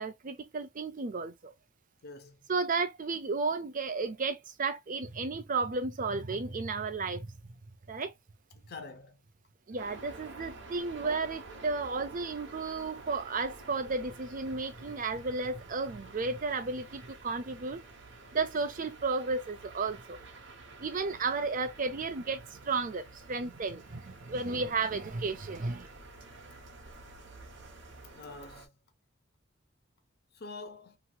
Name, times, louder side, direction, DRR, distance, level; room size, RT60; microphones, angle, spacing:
voice 1, 0.0-1.5 2.5-7.3 7.9-8.1 9.7-17.8 18.3-20.2 20.8-25.9, right 4 dB, 45° right, 0.5 m, -33 dB
voice 2, 2.0-2.4 8.7-9.2 28.2-28.7 30.4-31.0, left 3 dB, 55° left, 0.6 m, -45 dB
sound 1, 9.8-28.7, right 3 dB, 65° right, 0.9 m, -50 dB
3.0 x 2.8 x 2.2 m
head